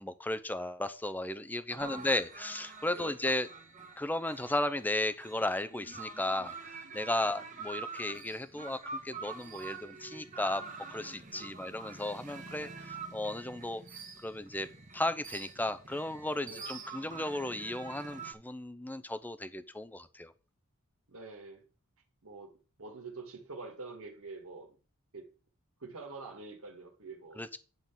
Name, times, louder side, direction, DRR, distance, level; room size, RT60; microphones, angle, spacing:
voice 1, 0.0-3.5 4.0-8.8 9.0-13.8 14.2-14.7 14.9-20.3 27.4-27.6, left 1 dB, 10° left, 0.6 m, -35 dB
voice 2, 1.7-2.1 3.0-3.2 7.3-7.5 11.3-11.7 16.5-16.7 21.1-21.6 22.2-24.8 25.1-25.3 25.8-27.4, right 3 dB, 65° right, 1.8 m, -46 dB
sound 1, 1.8-18.3, right 4 dB, 35° right, 1.5 m, -46 dB
10.5 x 3.9 x 7.3 m
head